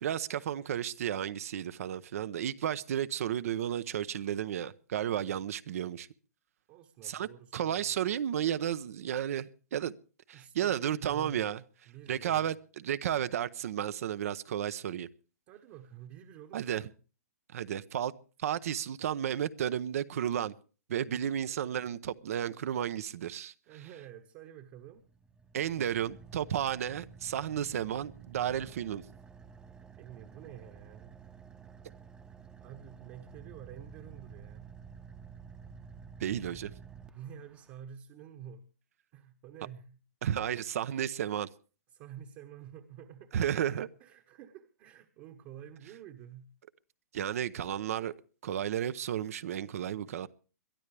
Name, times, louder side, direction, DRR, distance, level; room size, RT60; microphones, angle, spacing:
voice 1, 0.0-6.1 7.0-9.9 10.3-11.6 12.1-15.1 16.5-16.8 17.5-18.1 18.4-20.5 20.9-23.5 25.5-29.0 36.2-36.7 40.2-41.5 43.3-43.9 47.1-48.1 48.4-50.3, right 10 dB, 60° right, 0.8 m, -33 dB
voice 2, 6.7-8.0 10.3-11.5 11.9-12.5 15.5-16.7 21.1-21.4 23.7-25.1 30.0-31.2 32.6-34.7 37.1-38.7 39.1-40.0 41.9-43.4 44.0-46.5, right 9 dB, 35° right, 1.2 m, -49 dB
Car / Idling, 24.8-37.8, right 6 dB, 10° right, 0.8 m, -51 dB
22.5 x 12.5 x 3.4 m
hypercardioid pair, 145°, 9 cm